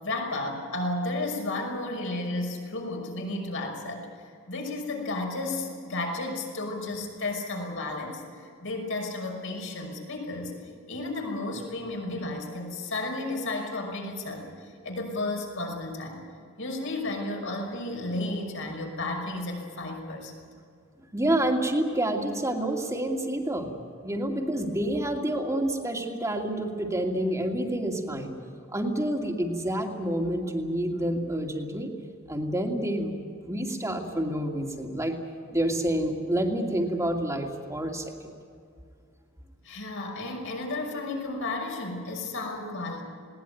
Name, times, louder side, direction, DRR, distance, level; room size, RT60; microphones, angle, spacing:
voice 1, 0.0-10.5 10.9-16.2 16.6-20.3 39.6-43.0, left 2 dB, 65° left, 1 dB, 5.7 m, -33 dB
voice 2, 21.1-23.7 24.0-28.3 28.7-31.9 32.3-33.1 33.4-35.2 35.5-38.3, right 1 dB, 15° right, 2 dB, 2.4 m, -28 dB
20.5 x 18.5 x 9.1 m, 2.3 s
head